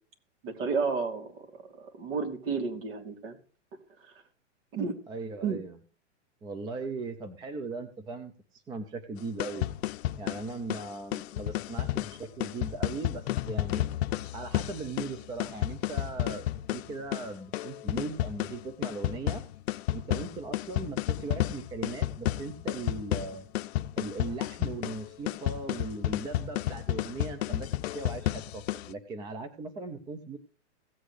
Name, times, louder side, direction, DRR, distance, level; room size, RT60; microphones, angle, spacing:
voice 1, 0.4-3.4 4.0-4.1 4.7-4.9 5.4-5.6, right 5 dB, 50° right, 4 dB, 3.0 m, -32 dB
voice 2, 5.1-5.8 6.4-9.7 10.2-13.9 14.3-19.4 19.9-23.4 24.0-27.7 27.9-30.4, right 3 dB, 10° right, 10 dB, 0.5 m, -39 dB
sound 1, 9.2-28.9, left 14 dB, 60° left, 0.6 m, -32 dB
16.5 x 8.1 x 3.2 m, 0.38 s
hypercardioid pair, 140°, 36 cm